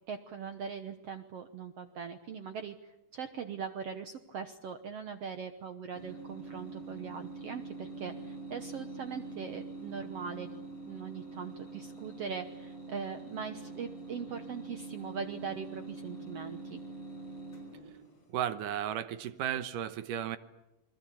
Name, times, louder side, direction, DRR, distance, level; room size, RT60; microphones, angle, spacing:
voice 1, 0.0-2.7 3.1-10.6 10.9-16.8, right 6 dB, 85° right, 8 dB, 1.3 m, -41 dB
sound 1, 5.9-18.3, right 3 dB, 35° left, 6.2 m, -45 dB
voice 2, 18.3-20.4, right 10 dB, 70° right, 12 dB, 2.4 m, -34 dB
28.5 x 21.5 x 8.5 m, 0.95 s
omnidirectional pair, 4.5 m